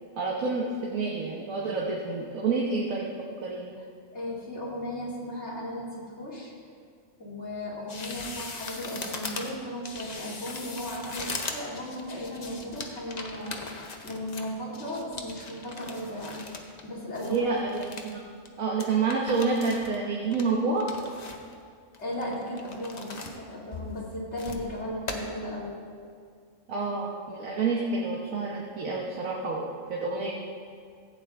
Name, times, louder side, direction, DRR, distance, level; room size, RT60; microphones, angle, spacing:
voice 1, 0.2-3.1 3.4-3.7 17.2-18.2 18.6-20.8 26.7-30.3, right 4 dB, 80° right, -3 dB, 1.6 m, -28 dB
voice 2, 4.1-5.9 6.2-6.5 7.2-17.4 22.0-25.7, left 1 dB, 55° left, -6 dB, 2.8 m, -36 dB
sound 1, 7.9-16.9 17.1-18.1 18.5-18.6 18.8-20.0 20.3-21.5 21.9-23.4 23.7-24.7 25.1-25.2, left 3 dB, 35° left, 0.8 m, -40 dB
15.5 x 8.7 x 3.6 m, 2.1 s
omnidirectional pair, 1.4 m